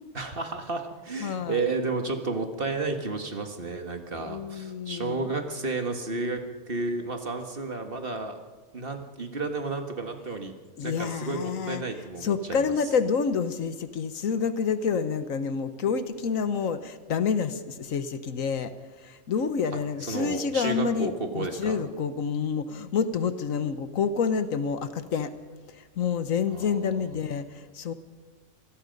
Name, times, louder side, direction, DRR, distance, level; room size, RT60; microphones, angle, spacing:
voice 1, 0.1-8.4 8.7-10.5 10.8-12.7 20.0-21.8 26.5-27.2, right 3 dB, 45° right, 5 dB, 1.8 m, -32 dB
voice 2, 1.2-1.6 4.2-5.3 10.8-11.8 12.2-18.7 19.0-25.3 26.0-27.9, left 6 dB, 75° left, 12 dB, 1.4 m, -28 dB
26.5 x 18.5 x 5.3 m, 1.4 s
omnidirectional pair, 1.4 m